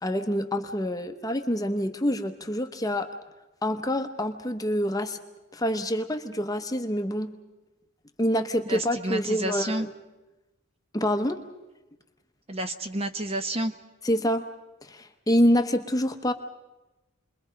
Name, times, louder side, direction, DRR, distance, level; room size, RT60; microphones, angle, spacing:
voice 1, 0.0-3.1 3.6-5.2 5.5-7.3 8.2-9.9 10.9-11.4 14.0-14.4 14.8-16.3, equal, 15° left, 7 dB, 0.9 m, -26 dB
voice 2, 8.7-9.9 12.5-13.7, right 1 dB, 25° right, 8 dB, 0.8 m, -30 dB
29.5 x 21.5 x 5.2 m, 1.1 s
head